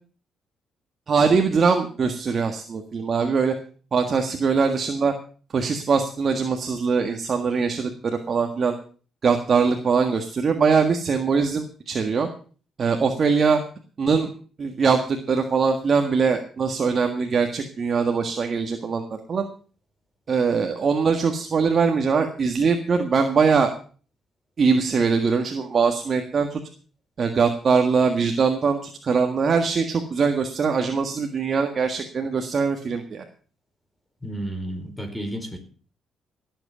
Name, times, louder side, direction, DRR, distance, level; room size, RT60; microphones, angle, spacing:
voice 1, 1.1-3.5 3.9-5.1 5.5-8.7 9.2-12.3 12.8-13.6 14.0-14.3 14.6-19.5 20.3-23.7 24.6-26.6 27.2-33.3, right 5 dB, 45° right, 5 dB, 1.7 m, -22 dB
voice 2, 34.2-35.6, right 1 dB, 5° left, 6 dB, 4.3 m, -32 dB
16.5 x 8.1 x 6.9 m, 0.41 s
cardioid pair, 90°, 0 cm